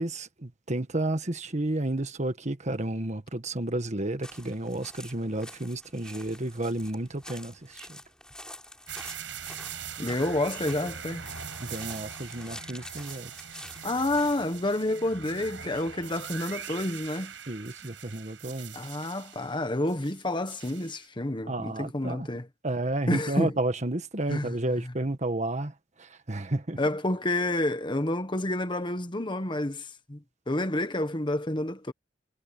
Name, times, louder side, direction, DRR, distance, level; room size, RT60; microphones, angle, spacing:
voice 1, 0.0-8.0 11.6-13.3 17.5-18.8 21.5-22.3 22.6-26.8, right 1 dB, 40° right, 1.6 m, -31 dB
sound 1, 4.2-14.4, left 1 dB, 5° left, 7.9 m, -48 dB
sound 2, 8.9-21.1, right 7 dB, 80° right, 5.6 m, -42 dB
voice 2, 10.0-11.2 13.8-17.3 18.7-22.5 23.1-23.5 24.3-24.5 26.8-31.9, left 1 dB, 25° left, 1.4 m, -29 dB
head